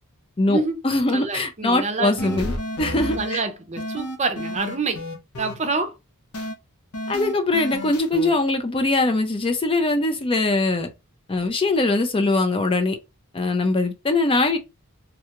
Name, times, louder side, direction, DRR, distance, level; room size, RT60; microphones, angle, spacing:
voice 1, 0.4-3.4 7.1-10.9 11.3-13.0 13.3-14.6, left 2 dB, 25° left, 0.4 m, -22 dB
voice 2, 1.1-2.5 3.2-5.0 5.4-5.9, right 3 dB, 30° right, 0.6 m, -27 dB
sound 1, 2.2-3.4 3.8-5.6 6.3-6.5 6.9-8.3, left 1 dB, 80° left, 0.9 m, -31 dB
3.6 x 2.3 x 2.9 m
head